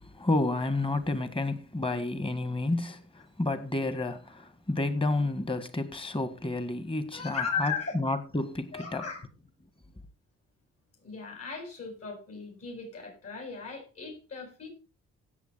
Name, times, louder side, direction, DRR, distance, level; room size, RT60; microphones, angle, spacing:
voice 1, 0.0-9.0, left 2 dB, 15° left, 1.8 m, -30 dB
voice 2, 7.1-8.0 8.7-9.3 11.0-14.7, left 5 dB, 50° left, 7.3 m, -36 dB
16.5 x 7.3 x 4.1 m
cardioid pair, 90°, 30 cm